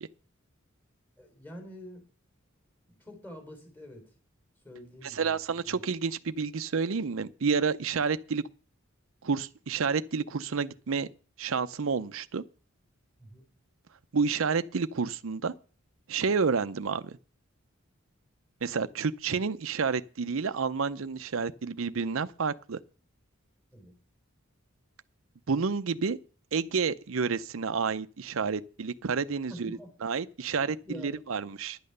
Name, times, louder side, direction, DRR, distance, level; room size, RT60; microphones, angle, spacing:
voice 1, 1.2-2.1 2.9-4.1 4.6-5.4 5.6-5.8 13.2-13.4 23.7-24.0 29.5-29.9 30.8-31.1, equal, 10° left, 3.6 m, -46 dB
voice 2, 5.0-8.4 9.2-11.1 11.4-12.4 14.1-15.5 16.1-17.2 18.6-22.8 25.5-26.2 26.5-30.8 31.0-31.8, right 5 dB, 75° right, 0.6 m, -30 dB
11.0 x 8.7 x 6.7 m
head